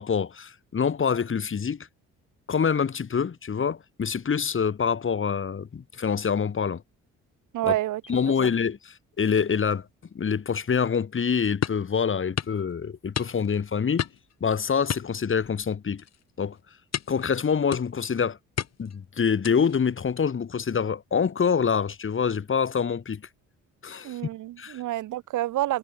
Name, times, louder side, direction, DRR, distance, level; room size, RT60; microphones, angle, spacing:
voice 1, 0.0-1.8 2.5-6.8 8.1-9.9 10.1-14.1 14.4-16.0 16.4-16.6 17.1-18.4 18.8-23.2 23.8-24.2 24.6-24.8, left 6 dB, 40° left, 3.8 m, -26 dB
voice 2, 7.5-8.0 8.4-8.5 24.0-25.8, right 15 dB, 85° right, 2.2 m, -28 dB
sound 1, 11.6-11.9 12.4-12.6 13.1-13.6 14.0-14.3 14.9-15.7 16.0-16.2 16.9-17.3 17.7-18.1 18.6-19.0 19.4-19.8, left 9 dB, 60° left, 7.3 m, -32 dB
cardioid pair, 90°, 30 cm